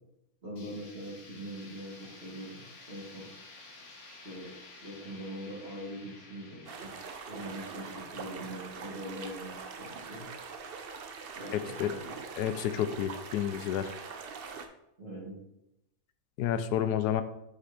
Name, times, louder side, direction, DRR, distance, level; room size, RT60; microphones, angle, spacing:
voice 1, 0.4-3.3 4.1-4.5 4.8-6.9 7.3-10.2 11.3-12.2 15.0-15.4, equal, 40° right, -4 dB, 2.6 m, -42 dB
sound 1, 0.6-10.3, left 3 dB, 50° left, 1.4 m, -53 dB
sound 2, 6.7-14.7, right 5 dB, 55° right, 0.6 m, -43 dB
voice 2, 11.5-11.9 12.4-13.9 16.4-17.2, left 10 dB, 80° left, 10 dB, 1.1 m, -30 dB
8.1 x 5.1 x 4.3 m, 0.85 s
omnidirectional pair, 1.7 m